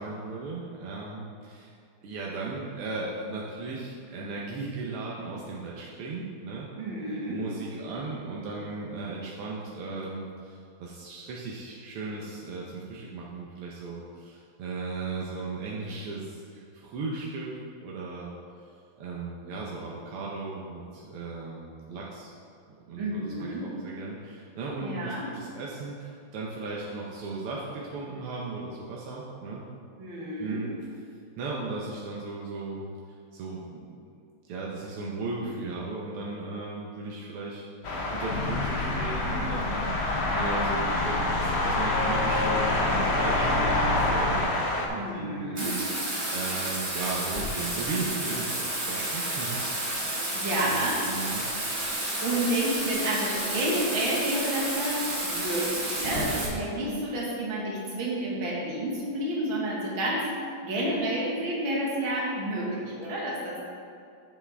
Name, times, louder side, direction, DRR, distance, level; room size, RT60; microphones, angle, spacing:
voice 1, 0.0-1.7 2.0-6.7 7.2-17.6 17.8-18.3 19.0-22.3 22.9-29.6 30.4-30.7 31.4-32.9 33.3-34.1 34.5-45.8 46.3-50.3 50.6-51.5, right 3 dB, 85° right, -4 dB, 1.8 m, -36 dB
voice 2, 6.8-7.4 23.0-23.7 24.8-25.3 30.0-30.6 44.9-45.8 50.3-51.0 52.2-60.3 60.6-63.6, right 1 dB, 65° right, -4 dB, 2.3 m, -30 dB
sound 1, 37.8-44.9, left 2 dB, 70° left, 0.6 m, -27 dB
sound 2, 38.3-44.4, left 2 dB, 85° left, 1.7 m, -33 dB
Bathtub (filling or washing), 45.6-56.5, right 1 dB, 25° right, 1.3 m, -31 dB
8.2 x 7.2 x 3.4 m, 2.4 s
omnidirectional pair, 2.4 m